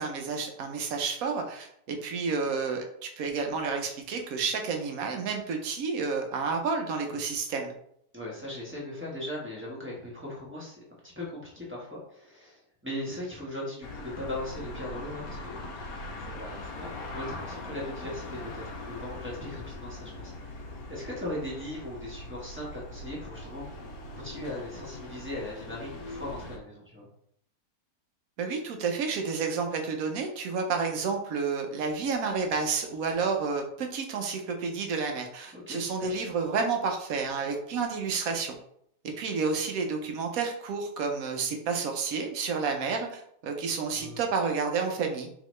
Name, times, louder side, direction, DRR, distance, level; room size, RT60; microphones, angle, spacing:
voice 1, 0.0-2.8 3.2-7.7 28.4-38.5 39.0-45.3, right 5 dB, 65° right, 4 dB, 1.0 m, -30 dB
voice 2, 8.1-15.8 16.2-23.8 24.1-27.1 35.5-36.1 44.0-44.2, left 1 dB, 10° right, -5 dB, 0.9 m, -39 dB
sound 1, 13.8-26.6, left 2 dB, 70° left, 1.0 m, -41 dB
4.0 x 3.0 x 3.1 m, 0.71 s
omnidirectional pair, 1.8 m